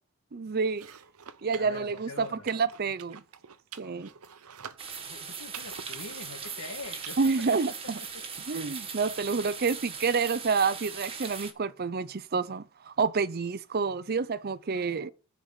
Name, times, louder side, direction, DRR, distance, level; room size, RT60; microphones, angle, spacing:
voice 1, 0.3-0.9 1.4-3.2 3.8-4.1 7.2-8.0 8.5-15.1, right 4 dB, 45° right, 0.6 m, -29 dB
sound 1, 0.7-7.5, right 8 dB, 85° right, 0.8 m, -48 dB
voice 2, 1.5-2.4 5.0-8.2 14.7-15.1, left 3 dB, 85° left, 2.0 m, -44 dB
sound 2, 4.8-11.5, right 6 dB, 25° right, 1.6 m, -40 dB
10.5 x 4.7 x 7.2 m
head